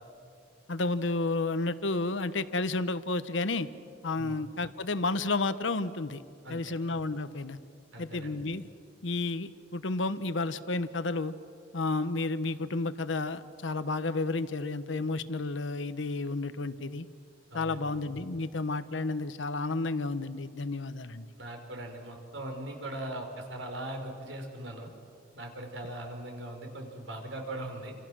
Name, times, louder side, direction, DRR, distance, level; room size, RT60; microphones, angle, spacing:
voice 1, 0.7-3.7 4.0-6.2 6.5-7.6 8.0-8.7 9.0-11.3 11.7-17.1 17.5-21.3, left 3 dB, 75° left, 12 dB, 1.0 m, -31 dB
voice 2, 7.9-8.4 17.5-17.9 21.4-24.9 25.4-27.9, right 1 dB, 80° right, 3 dB, 4.7 m, -40 dB
29.5 x 26.5 x 6.3 m, 2.3 s
head